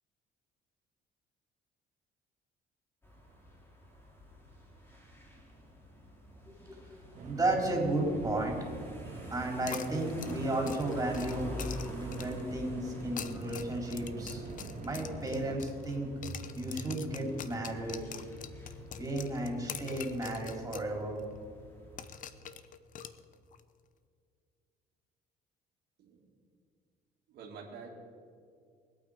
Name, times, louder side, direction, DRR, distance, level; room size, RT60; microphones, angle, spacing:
sound 1, 3.0-22.2, equal, 15° left, 3.3 m, -48 dB
sound 2, 7.1-15.6, right 3 dB, 45° right, 2.3 m, -45 dB
voice 1, 7.2-8.6 9.3-11.5 11.9-14.4 14.8-16.1 16.6-18.0 19.0-21.2, right 1 dB, 20° right, 0 dB, 3.9 m, -33 dB
sound 3, 9.7-12.5 13.0-16.0 16.2-20.9 21.2-21.3 22.0-23.6, left 9 dB, 50° left, 0.8 m, -45 dB
voice 2, 26.0-26.3 27.3-27.9, right 5 dB, 70° right, -5 dB, 2.4 m, -48 dB
23.5 x 8.9 x 5.1 m, 2.3 s
cardioid pair, 110°, 17 cm